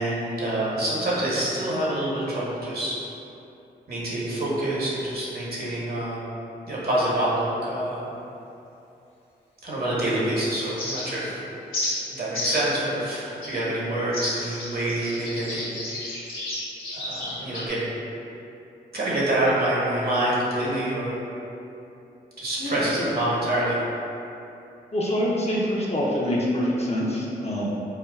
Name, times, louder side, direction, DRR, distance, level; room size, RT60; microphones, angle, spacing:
voice 1, 0.0-3.0 3.9-6.3 6.7-8.0 9.6-11.4 12.1-16.5 16.9-17.8 18.9-21.2 22.4-23.8, right 1 dB, 50° right, -7 dB, 1.2 m, -26 dB
sound 1, 10.8-11.3 11.7-11.9 12.3-12.7 13.4-13.6 14.1-17.7, left 2 dB, 85° left, 1.0 m, -31 dB
voice 2, 22.6-23.2 24.9-27.6, equal, 30° left, -5 dB, 0.7 m, -25 dB
4.4 x 2.1 x 2.3 m, 2.8 s
supercardioid pair, 40°, 20 cm